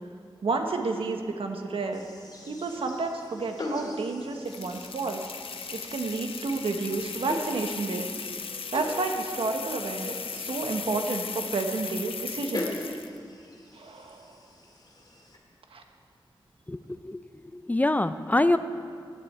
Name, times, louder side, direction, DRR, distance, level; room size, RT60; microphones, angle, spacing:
voice 1, 0.4-2.0 2.5-5.2 5.7-8.2 8.7-12.8 13.7-14.4 15.7-15.8, right 3 dB, 85° right, 4 dB, 1.2 m, -31 dB
sound 1, 1.9-15.4, left 2 dB, 45° left, 2.2 m, -41 dB
sound 2, 4.5-13.2, left 6 dB, 80° left, 0.7 m, -37 dB
voice 2, 16.7-17.2 17.5-18.6, left 2 dB, 15° left, 12 dB, 0.4 m, -25 dB
15.5 x 9.7 x 4.4 m, 2.2 s
wide cardioid pair, 75°, 9 cm